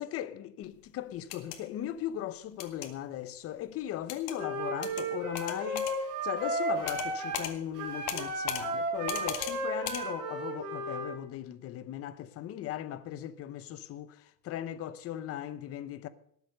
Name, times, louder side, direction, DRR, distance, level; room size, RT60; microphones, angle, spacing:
voice 1, 0.0-5.9 6.2-16.1, left 12 dB, 30° left, 0.7 m, -38 dB
sound 1, 1.2-1.6 2.6-2.9 4.1-4.4 4.8-5.0 5.3-5.9 6.9-7.1 7.3-7.5 8.1-8.6 9.1-9.5 9.8-10.0, left 11 dB, 80° left, 2.1 m, -36 dB
Wind instrument woodwind instrument, 4.4-7.5 7.7-11.1, right 2 dB, 40° right, 5.3 m, -34 dB
18.5 x 8.1 x 6.5 m
supercardioid pair, 155°, 48 cm